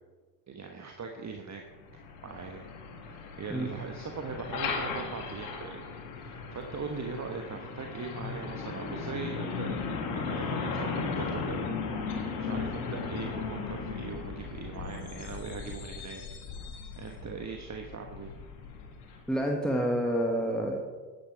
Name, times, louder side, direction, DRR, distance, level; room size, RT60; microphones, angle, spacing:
voice 1, 0.5-1.6 2.2-2.7 3.0-5.8 6.2-11.7 12.4-16.2 17.0-18.3, right 5 dB, 35° right, 3 dB, 1.3 m, -40 dB
Truck, 1.7-19.4, left 5 dB, 80° left, 1.9 m, -37 dB
voice 2, 19.3-20.8, equal, ahead, 1 dB, 1.6 m, -28 dB
11.5 x 9.2 x 4.8 m, 1.4 s
hypercardioid pair, 50°, 48 cm